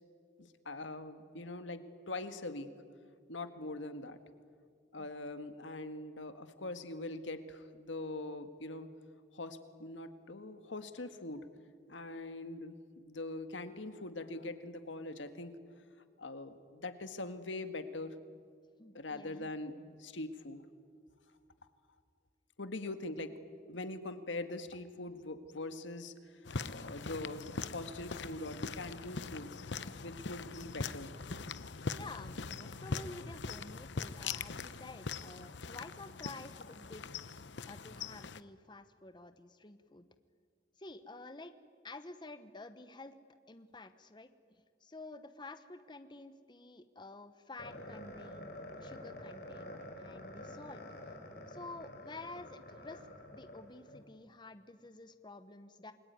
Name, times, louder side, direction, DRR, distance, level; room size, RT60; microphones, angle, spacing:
voice 1, 0.4-1.8 2.1-2.7 3.3-4.2 4.9-8.9 9.3-11.5 11.9-15.5 16.2-18.1 18.9-20.7 22.6-23.3 23.7-29.6 30.0-31.1, left 2 dB, 85° left, 9 dB, 1.8 m, -43 dB
voice 2, 18.8-19.5 22.8-22.9 31.9-37.1 37.7-40.1 40.8-41.6 41.8-43.2 43.5-50.8 51.5-55.9, left 2 dB, 25° left, 10 dB, 0.9 m, -50 dB
sound 1, 26.5-38.4, left 4 dB, 70° left, 0.8 m, -42 dB
sound 2, 47.6-54.0, left 1 dB, 55° left, 4.7 m, -48 dB
28.5 x 21.5 x 9.4 m, 2.2 s
head